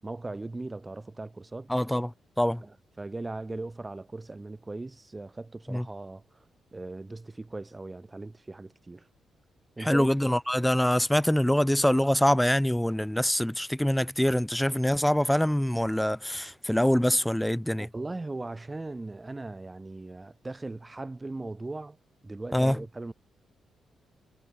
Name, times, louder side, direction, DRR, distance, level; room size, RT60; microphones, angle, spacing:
voice 1, 0.0-1.7 2.6-6.4 6.7-9.1 9.8-10.1 17.8-22.0 22.2-23.1, right 2 dB, 20° right, 6.8 m, -39 dB
voice 2, 1.7-2.6 5.7-5.9 9.8-17.9 22.5-22.8, equal, 5° left, 0.5 m, -25 dB
cardioid pair, 110°, 0 cm